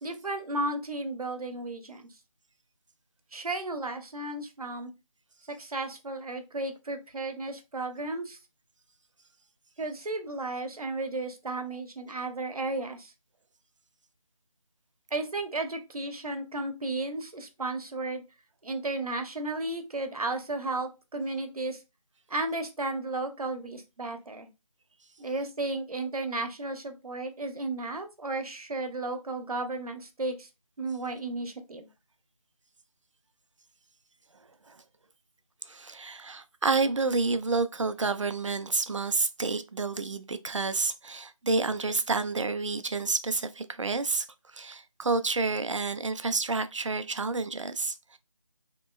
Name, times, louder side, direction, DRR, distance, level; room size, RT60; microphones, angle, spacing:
voice 1, 0.0-2.1 3.3-4.9 5.5-8.4 9.8-13.1 15.1-18.2 18.6-21.8 22.3-24.5 25.2-30.5 30.8-31.9, right 2 dB, 80° right, 0.8 m, -34 dB
voice 2, 35.7-48.2, right 3 dB, 55° right, 0.4 m, -29 dB
3.0 x 2.9 x 2.2 m
figure-of-eight pair, 175°, 18 cm